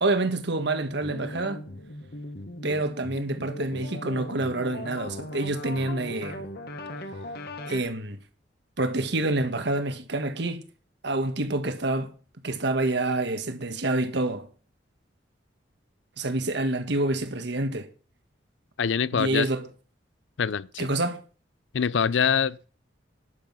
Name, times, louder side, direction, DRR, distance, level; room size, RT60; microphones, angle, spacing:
voice 1, 0.0-1.6 2.6-6.4 7.7-8.2 8.8-10.6 11.0-12.1 12.4-14.5 16.2-17.9 19.1-19.6 20.8-21.2, right 2 dB, 65° right, 1.5 m, -27 dB
sound 1, 1.0-7.8, left 1 dB, 60° left, 1.6 m, -38 dB
voice 2, 18.8-19.5 20.4-20.9 21.7-22.6, left 7 dB, 80° left, 0.5 m, -24 dB
11.5 x 7.9 x 5.5 m
head